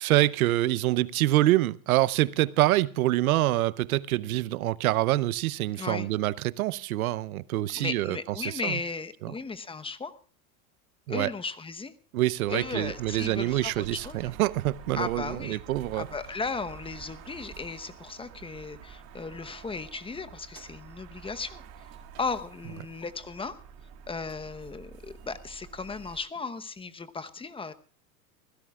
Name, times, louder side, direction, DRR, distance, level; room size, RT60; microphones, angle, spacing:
voice 1, 0.0-8.2 8.6-8.7 11.1-11.3 12.1-16.1, right 16 dB, 90° right, 0.7 m, -26 dB
voice 2, 5.8-6.1 7.7-10.1 11.1-12.0 12.5-14.3 14.9-15.6 16.0-21.6 22.2-23.6 24.1-27.7, left 4 dB, 15° left, 0.9 m, -36 dB
sound 1, 12.5-26.2, right 7 dB, 60° right, 2.5 m, -48 dB
25.0 x 16.5 x 2.4 m
supercardioid pair, 115°, 42 cm